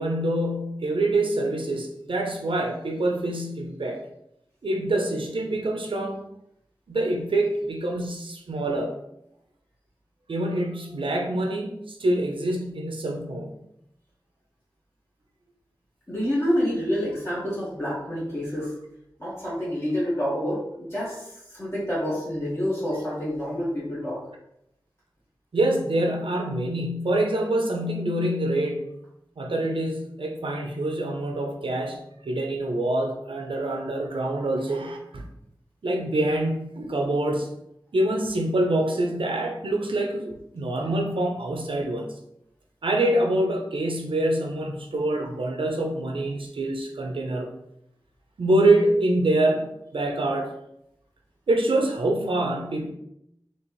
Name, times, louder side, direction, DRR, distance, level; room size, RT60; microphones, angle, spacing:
voice 1, 0.0-4.0 4.6-6.2 6.9-9.0 10.3-13.5 25.5-28.9 29.4-32.0 32.3-35.2 35.8-37.5 37.9-42.1 42.8-47.5 48.4-50.5 51.5-52.9, right 1 dB, 90° right, 2 dB, 0.6 m, -25 dB
voice 2, 16.1-18.7 19.2-21.3 21.5-24.2, equal, 30° left, -8 dB, 1.4 m, -28 dB
4.3 x 3.0 x 3.1 m, 0.79 s
wide cardioid pair, 65°, 9 cm